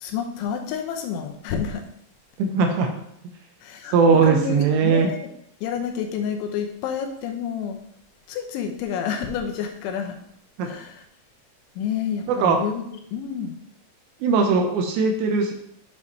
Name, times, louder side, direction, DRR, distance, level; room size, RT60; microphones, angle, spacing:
voice 1, 0.0-1.9 3.6-4.0 4.2-5.2 5.6-7.8 8.3-10.2 10.7-11.0 11.8-12.8 13.1-13.5, left 7 dB, 85° left, 4 dB, 3.3 m, -29 dB
voice 2, 2.4-2.9 3.9-5.1 10.6-10.7 12.3-12.6 14.2-15.5, right 5 dB, 80° right, 3 dB, 3.0 m, -19 dB
8.3 x 7.0 x 3.2 m, 0.71 s
omnidirectional pair, 5.4 m